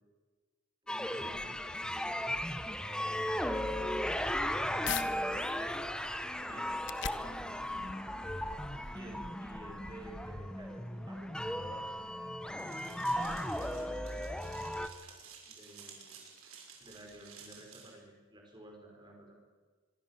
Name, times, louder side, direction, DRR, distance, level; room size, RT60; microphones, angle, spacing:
voice 1, 0.8-2.3 2.5-3.5 3.8-4.8 6.4-6.7 7.0-8.0 8.9-12.0 12.6-14.1 15.4-16.3 16.8-19.4, right 1 dB, 20° right, 1 dB, 5.3 m, -53 dB
sound 1, 0.9-14.9, left 1 dB, 5° left, 1.0 m, -36 dB
sound 2, 4.8-5.1 5.6-10.9, left 8 dB, 55° left, 1.2 m, -44 dB
sound 3, 12.6-17.9, right 6 dB, 80° right, 6.1 m, -53 dB
25.5 x 23.0 x 7.5 m, 1.4 s
head